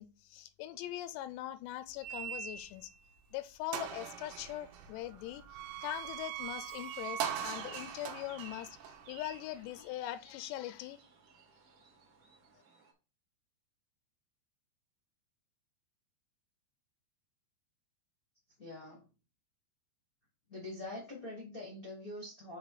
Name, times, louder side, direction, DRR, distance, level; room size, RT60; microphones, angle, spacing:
voice 1, 0.0-2.9 3.3-5.4 5.8-8.8 9.1-11.0, left 14 dB, 85° left, 2.7 m, -41 dB
sound 1, 2.0-2.9 3.3-3.4 3.7-9.8, right 9 dB, 85° right, 1.9 m, -42 dB
sound 2, 6.5-12.9, right 4 dB, 60° right, 1.4 m, -56 dB
voice 2, 18.6-19.0 20.5-22.6, left 2 dB, 55° left, 0.9 m, -44 dB
6.6 x 4.0 x 4.7 m
omnidirectional pair, 4.9 m